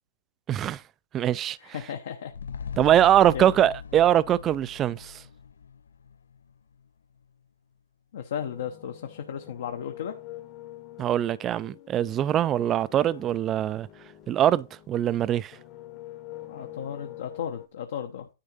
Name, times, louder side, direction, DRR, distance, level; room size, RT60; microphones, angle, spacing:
voice 1, 0.5-0.8 1.1-1.6 2.8-5.2 11.0-13.9 14.3-15.5, right 11 dB, 20° right, 0.3 m, -22 dB
voice 2, 1.6-2.3 3.3-3.5 8.1-10.1 16.5-18.3, left 8 dB, 65° left, 1.0 m, -35 dB
sound 1, 2.3-6.8 7.2-7.3, left 6 dB, 90° left, 0.4 m, -40 dB
sound 2, 8.4-15.1 15.5-17.7, left 14 dB, 35° left, 1.0 m, -46 dB
10.0 x 3.7 x 5.5 m
hypercardioid pair, 145°, 0 cm